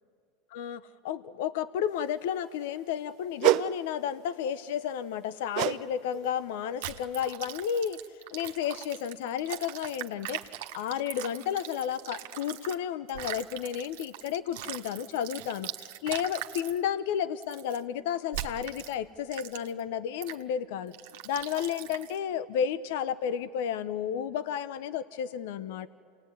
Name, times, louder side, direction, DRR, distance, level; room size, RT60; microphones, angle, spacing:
voice 1, 0.5-20.9 21.2-25.9, left 9 dB, 75° left, 14 dB, 0.8 m, -32 dB
sound 1, 3.4-3.7 5.5-5.8 6.1-6.4 6.9-7.0, right 16 dB, 55° right, 0.7 m, -25 dB
sound 2, 6.8-12.8 13.1-16.8 17.4-17.8 18.3-18.9 19.3-19.8 20.2-20.4 20.9-22.2, right 14 dB, 75° right, 1.4 m, -41 dB
28.5 x 19.0 x 9.7 m, 2.7 s
supercardioid pair, 115°, 0 cm